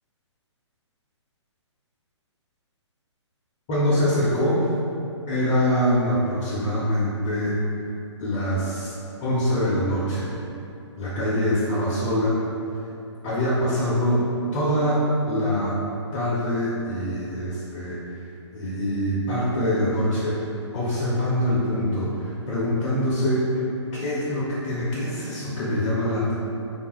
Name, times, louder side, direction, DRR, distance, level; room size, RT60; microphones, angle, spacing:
voice 1, 3.7-4.7 5.3-7.5 8.2-8.9 9.2-10.3 11.0-12.4 13.2-14.2 14.5-15.8 16.1-18.0 18.5-20.4 20.7-23.5 23.9-26.3, equal, 20° left, -7 dB, 0.4 m, -24 dB
3.3 x 2.3 x 2.9 m, 2.7 s
figure-of-eight pair, 130°, 16 cm